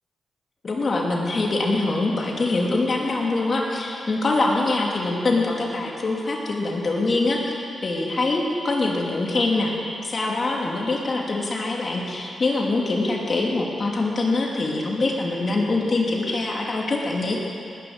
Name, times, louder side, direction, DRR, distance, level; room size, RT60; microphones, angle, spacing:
voice 1, 0.6-9.7 10.0-17.4, left 2 dB, 45° left, -2 dB, 2.8 m, -24 dB
19.0 x 10.5 x 6.7 m, 2.5 s
cardioid pair, 105°, 0 cm